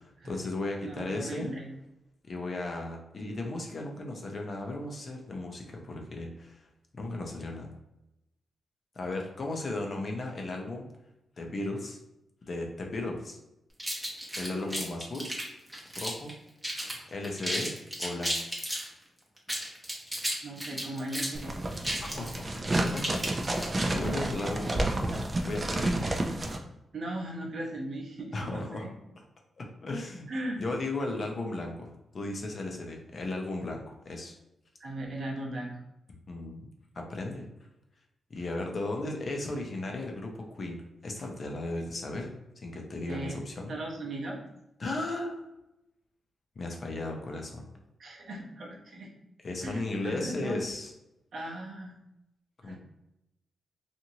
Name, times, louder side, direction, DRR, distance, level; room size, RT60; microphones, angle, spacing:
voice 1, 0.0-1.5 2.3-6.6 6.9-7.7 9.0-10.8 11.4-12.0 12.4-13.4 14.4-15.3 16.0-16.3 17.1-17.7 18.0-18.4 22.0-22.5 22.9-23.2 23.9-26.1 28.3-28.9 29.6-30.3 30.6-34.3 36.3-37.5 38.3-43.7 44.8-45.4 46.6-47.7 49.4-50.9 52.6-52.8, left 2 dB, 45° left, 1 dB, 0.5 m, -35 dB
voice 2, 0.8-1.7 14.4-14.7 20.4-21.6 26.9-28.9 30.3-30.6 34.8-35.8 43.1-43.4 43.7-44.4 48.0-49.1 49.6-50.6 51.3-52.0 52.6-52.8, right 1 dB, 60° right, -2 dB, 0.7 m, -37 dB
sound 1, 13.8-16.3 16.6-17.0 17.2-18.9 19.4-23.9, equal, 5° right, 0.7 m, -34 dB
sound 2, 21.3-26.6, right 1 dB, 25° right, 0.3 m, -30 dB
2.9 x 2.5 x 2.7 m, 0.89 s
wide cardioid pair, 125°, 0 cm